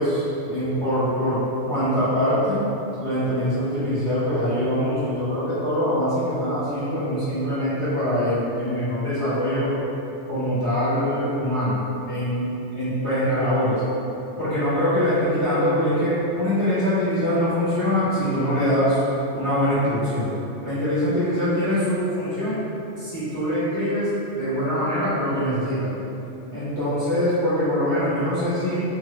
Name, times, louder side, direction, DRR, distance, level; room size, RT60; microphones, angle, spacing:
voice 1, 0.0-2.7 3.0-9.7 10.3-12.5 12.7-13.8 14.4-19.0 19.3-20.3 20.6-22.7 23.0-25.9 26.5-28.8, equal, 30° left, -16 dB, 0.9 m, -23 dB
2.9 x 2.6 x 2.9 m, 2.9 s
omnidirectional pair, 1.2 m